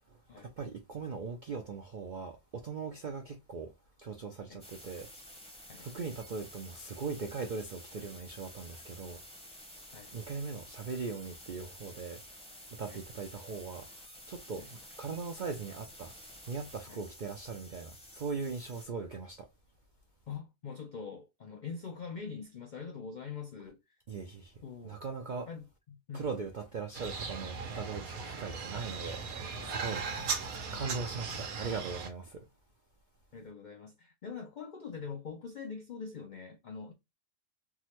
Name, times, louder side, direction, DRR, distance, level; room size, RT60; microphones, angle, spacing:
voice 1, 0.1-3.7 4.0-5.1 5.8-9.2 10.1-12.2 12.7-13.9 14.3-16.1 16.5-19.5 24.1-25.5 26.1-29.2 29.6-30.0 30.7-32.5, right 4 dB, 65° right, 0.4 m, -40 dB
sound 1, 4.6-18.8, equal, 5° left, 0.6 m, -51 dB
voice 2, 20.3-23.8 24.6-25.0 25.5-26.2 30.2-30.3 33.3-36.9, left 5 dB, 70° left, 0.4 m, -43 dB
sound 2, 26.9-32.1, right 5 dB, 85° right, 1.3 m, -38 dB
3.5 x 2.1 x 2.8 m
omnidirectional pair, 1.4 m